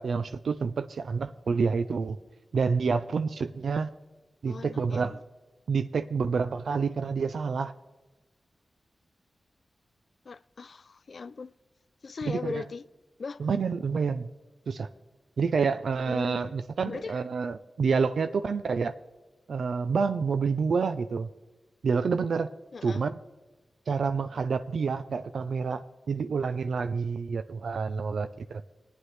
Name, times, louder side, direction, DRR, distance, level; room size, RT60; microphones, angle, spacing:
voice 1, 0.0-2.2 2.5-3.9 4.4-5.2 5.7-7.7 12.2-12.6 13.4-14.3 14.7-14.9 15.4-18.9 19.5-21.3 21.8-22.5 22.8-23.2 23.9-28.6, right 5 dB, 85° right, 0.4 m, -28 dB
voice 2, 4.5-5.2 10.3-11.5 12.0-12.8 13.2-13.5 16.1-16.5 16.9-17.2 22.7-23.0, left 4 dB, 60° left, 0.3 m, -38 dB
23.0 x 9.2 x 3.3 m
wide cardioid pair, 80°, 0 cm